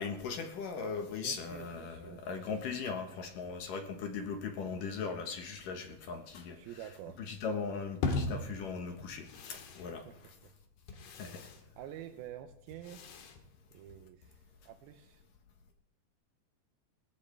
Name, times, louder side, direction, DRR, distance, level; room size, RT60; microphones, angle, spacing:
voice 1, 0.0-6.8 7.2-10.0 11.2-11.4, left 5 dB, 65° left, 4 dB, 2.8 m, -39 dB
voice 2, 1.2-2.6 6.5-7.2 10.1-10.2 10.4-10.5 10.9-11.2 11.8-13.0 13.7-14.4 14.6-15.2, right 11 dB, 80° right, 7 dB, 2.6 m, -48 dB
sound 1, 8.0-14.2, left 3 dB, 85° left, 3.7 m, -41 dB
19.5 x 17.5 x 3.5 m, 0.77 s
omnidirectional pair, 4.4 m